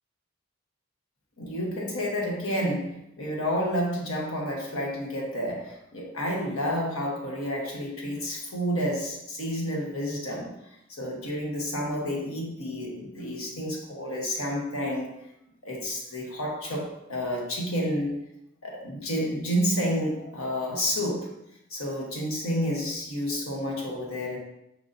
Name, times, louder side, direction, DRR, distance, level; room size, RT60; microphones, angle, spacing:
voice 1, 1.4-10.6 10.9-15.1 15.6-18.2 18.6-21.4 21.7-24.4, equal, 85° left, -2 dB, 1.2 m, -30 dB
4.8 x 2.6 x 3.9 m, 0.83 s
head